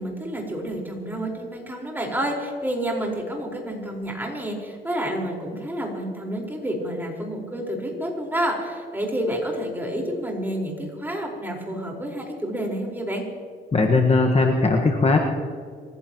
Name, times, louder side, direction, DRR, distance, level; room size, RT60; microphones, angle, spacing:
voice 1, 0.0-13.2, right 1 dB, 10° right, -1 dB, 4.9 m, -29 dB
voice 2, 13.7-15.2, left 3 dB, 30° left, 2 dB, 1.6 m, -19 dB
27.0 x 15.5 x 3.1 m, 2.1 s
cardioid pair, 90°, 20 cm